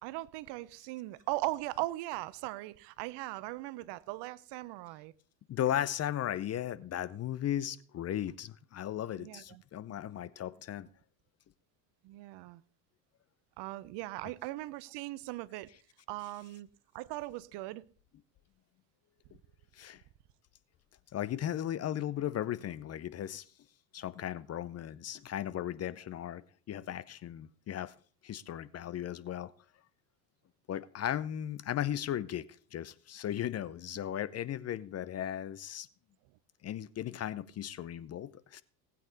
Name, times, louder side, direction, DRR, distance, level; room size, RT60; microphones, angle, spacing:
voice 1, 0.0-5.1 9.2-9.6 12.0-12.6 13.6-15.7 16.1-16.7 16.9-17.8, right 18 dB, 55° right, 0.9 m, -39 dB
voice 2, 5.5-10.9 19.7-20.0 21.1-23.5 23.9-27.9 28.2-29.5 30.7-32.5 32.7-35.9 36.6-38.6, left 11 dB, 30° left, 0.6 m, -36 dB
18.5 x 8.6 x 4.0 m
hypercardioid pair, 85°, 50 cm